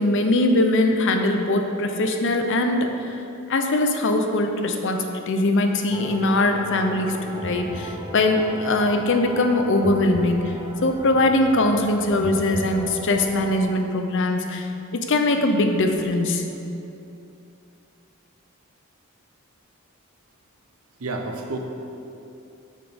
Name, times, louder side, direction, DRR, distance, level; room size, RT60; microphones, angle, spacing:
voice 1, 0.0-3.2 3.5-10.5 10.8-16.5, left 2 dB, 60° left, 5 dB, 0.7 m, -21 dB
sound 1, 5.9-13.7, right 1 dB, 20° right, 0.5 m, -36 dB
voice 2, 21.0-21.6, right 3 dB, 85° right, 3 dB, 0.8 m, -29 dB
6.5 x 6.2 x 5.1 m, 2.8 s
head